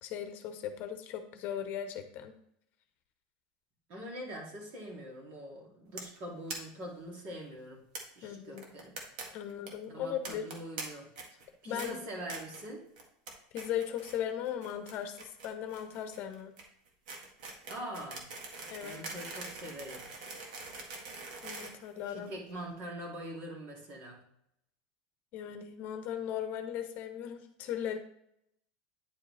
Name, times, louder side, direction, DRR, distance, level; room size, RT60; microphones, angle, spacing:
voice 1, 0.0-2.3 8.2-8.7 9.3-10.4 11.6-12.0 13.5-16.6 18.7-19.0 21.4-22.3 25.3-28.0, left 9 dB, 45° left, 7 dB, 0.9 m, -38 dB
voice 2, 3.9-7.8 8.2-9.0 9.9-11.1 11.6-12.9 17.7-18.3 18.8-20.1 22.1-24.2, equal, 50° right, -1 dB, 2.7 m, -43 dB
sound 1, 6.0-6.2 6.5-6.6 6.8-6.9 7.1-7.2 7.9-8.0 8.6-9.2 9.5-9.7 10.2-10.8 11.1-11.5 11.8-11.9 12.3-12.6 13.0-13.3 13.6-14.2 14.4-22.5, right 3 dB, 85° right, 1.8 m, -43 dB
9.8 x 5.0 x 3.4 m, 0.73 s
supercardioid pair, 140°, 4 cm